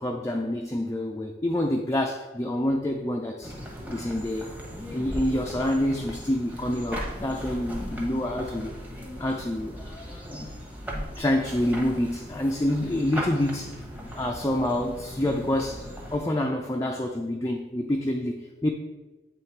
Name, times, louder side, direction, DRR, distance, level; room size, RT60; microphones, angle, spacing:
voice 1, 0.0-3.5 3.9-4.5 4.9-8.7 9.2-10.5 10.9-13.7 14.1-15.9 16.1-18.7, left 1 dB, 15° left, 2 dB, 0.4 m, -27 dB
sound 1, 3.4-16.2, equal, 10° right, 1.0 m, -38 dB
8.0 x 3.2 x 4.6 m, 1.2 s
head